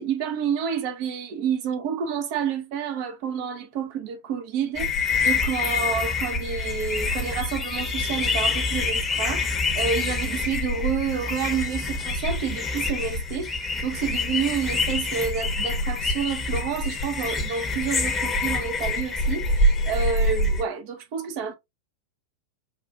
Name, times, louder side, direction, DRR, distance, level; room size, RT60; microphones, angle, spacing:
voice 1, 0.0-13.5 13.8-21.5, right 7 dB, 45° right, 0.7 m, -29 dB
sound 1, 4.7-20.6, left 2 dB, 15° left, 1.0 m, -26 dB
5.4 x 2.5 x 2.4 m
figure-of-eight pair, 90°, 0 cm